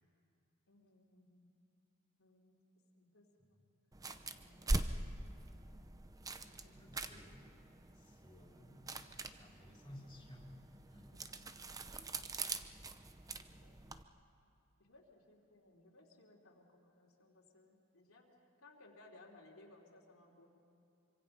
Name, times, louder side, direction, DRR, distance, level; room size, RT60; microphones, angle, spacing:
voice 1, 0.7-1.5 2.2-2.6 3.0-3.6 4.3-5.2 6.4-6.9 11.1-11.5 13.6-14.0 14.8-18.3 18.6-20.5, left 2 dB, 80° left, -2 dB, 3.1 m, -63 dB
sound 1, 3.9-14.0, right 2 dB, 15° right, 0.6 m, -43 dB
voice 2, 6.7-10.5 10.9-11.1, left 1 dB, 20° left, -1 dB, 3.7 m, -57 dB
26.0 x 25.0 x 5.6 m, 2.6 s
head